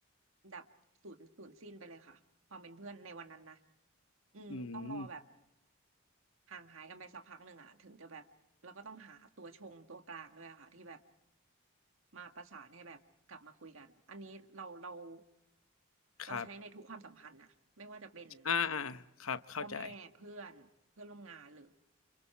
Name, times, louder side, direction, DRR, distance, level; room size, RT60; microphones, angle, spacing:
voice 1, 1.0-2.2 2.5-3.6 4.3-5.2 6.5-8.3 8.6-11.0 12.1-13.0 13.3-15.2 16.3-18.5 19.6-20.7 21.0-21.7, right 4 dB, 75° right, 6 dB, 1.7 m, -50 dB
voice 2, 4.5-5.1 16.2-16.5 18.4-19.9, left 6 dB, 85° left, 12 dB, 0.9 m, -36 dB
29.5 x 28.0 x 4.5 m, 0.83 s
head